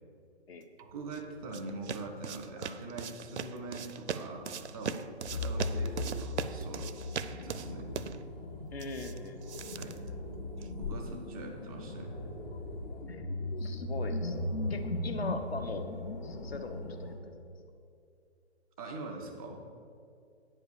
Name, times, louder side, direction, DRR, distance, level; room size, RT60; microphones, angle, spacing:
voice 1, 0.8-5.0 5.3-6.9 7.3-7.9 9.8-10.0 10.8-12.1 18.8-19.6, right 2 dB, 10° left, -1 dB, 0.3 m, -43 dB
sound 1, 0.8-10.8, right 6 dB, 85° right, 0.5 m, -41 dB
sound 2, 5.3-17.2, left 1 dB, 40° left, 2.3 m, -39 dB
voice 2, 8.7-9.5 13.1-13.2 13.6-14.4 14.7-15.9 16.2-17.1, left 3 dB, 65° left, 7 dB, 1.1 m, -40 dB
sound 3, 12.5-17.6, left 3 dB, 80° left, 0.7 m, -40 dB
9.5 x 5.4 x 6.8 m, 2.5 s
figure-of-eight pair, 145°, 34 cm